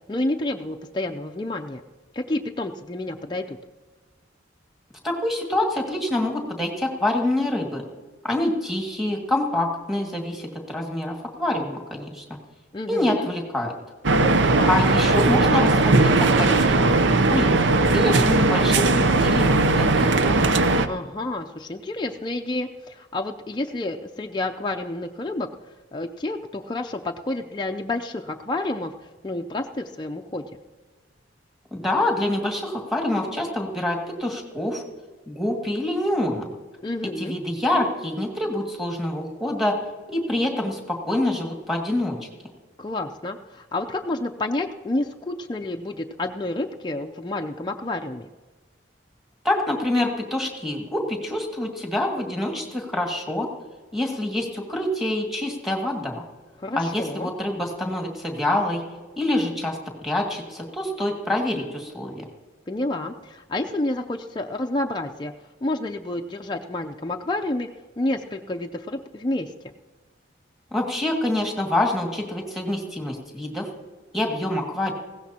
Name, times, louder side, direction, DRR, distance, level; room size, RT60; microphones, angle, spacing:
voice 1, 0.1-1.8 2.1-3.6 12.7-13.3 14.6-14.9 20.8-25.5 25.9-28.9 29.2-30.6 36.8-37.4 42.8-48.3 56.6-57.3 62.7-65.3 65.6-67.7 68.0-69.7, left 2 dB, 25° left, 2 dB, 0.5 m, -29 dB
voice 2, 5.0-7.8 8.2-12.2 12.9-13.7 14.7-16.9 17.3-20.5 31.7-34.8 35.3-36.5 37.0-39.8 40.1-42.2 49.4-53.5 53.9-56.2 56.7-58.8 59.2-59.8 60.0-62.3 70.7-73.7 74.1-74.9, left 1 dB, ahead, 0 dB, 2.1 m, -26 dB
sound 1, 14.0-20.9, right 2 dB, 75° right, 0.7 m, -18 dB
20.0 x 16.5 x 2.9 m, 1.3 s
head